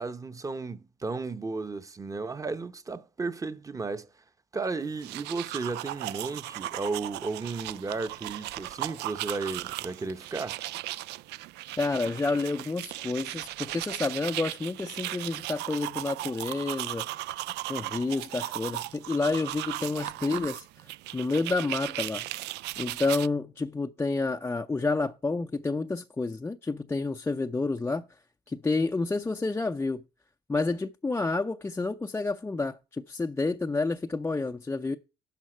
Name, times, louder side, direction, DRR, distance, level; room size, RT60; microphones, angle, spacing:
voice 1, 0.0-4.1 4.5-10.6, right 3 dB, 20° right, 0.9 m, -34 dB
sound 1, 4.9-23.3, right 16 dB, 80° right, 0.4 m, -37 dB
voice 2, 11.8-17.1 17.7-22.3 22.8-28.1 28.5-30.0 30.5-35.0, left 3 dB, 15° left, 0.5 m, -29 dB
11.0 x 5.6 x 4.4 m
cardioid pair, 110°, 17 cm